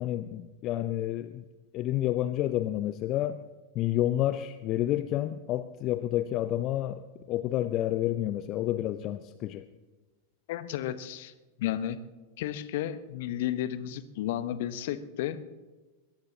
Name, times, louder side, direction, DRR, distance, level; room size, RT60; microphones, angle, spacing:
voice 1, 0.0-1.4 1.7-3.4 3.8-7.0 7.3-9.6, left 13 dB, 35° left, 13 dB, 0.6 m, -29 dB
voice 2, 10.5-11.3 11.6-12.0 12.4-15.4, left 11 dB, 50° left, 13 dB, 1.0 m, -32 dB
22.5 x 21.0 x 2.9 m, 1.2 s
figure-of-eight pair, 90°, 0 cm